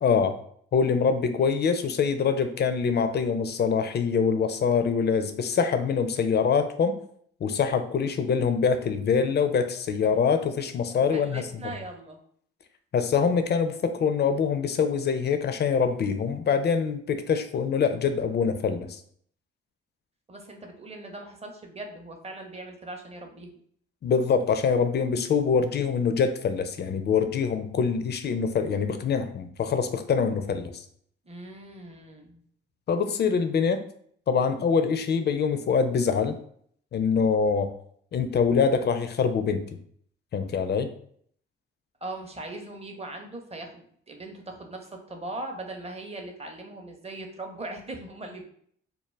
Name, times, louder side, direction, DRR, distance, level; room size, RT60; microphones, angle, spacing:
voice 1, 0.0-0.4 0.7-7.0 7.4-11.5 12.9-19.0 24.0-30.8 32.9-33.8 34.3-36.4 36.9-37.7 38.1-39.6 40.3-40.9, left 6 dB, 35° left, 9 dB, 0.4 m, -24 dB
voice 2, 10.9-12.2 20.3-23.5 31.3-32.4 42.0-48.5, right 2 dB, 20° right, 3 dB, 0.7 m, -40 dB
2.2 x 2.1 x 3.1 m, 0.62 s
hypercardioid pair, 40°, 30 cm